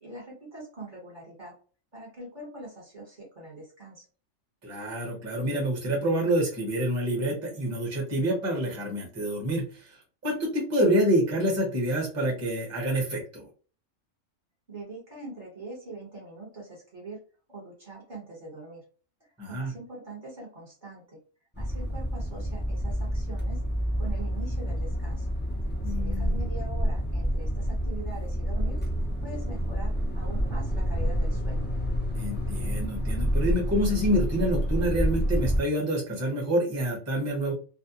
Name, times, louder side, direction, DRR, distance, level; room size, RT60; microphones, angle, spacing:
voice 1, 0.0-1.6 1.9-4.0 14.7-17.2 17.5-18.8 19.2-21.2 21.5-23.6 24.0-25.3 25.8-28.8 29.2-31.7, right 2 dB, 40° right, -3 dB, 1.1 m, -43 dB
voice 2, 4.6-10.0 10.2-13.5 19.4-19.7 25.8-26.4 32.1-37.5, right 1 dB, 15° right, -2 dB, 0.8 m, -27 dB
sound 1, 21.5-35.6, equal, 15° left, 0.3 m, -28 dB
2.6 x 2.1 x 2.8 m, 0.39 s
omnidirectional pair, 1.4 m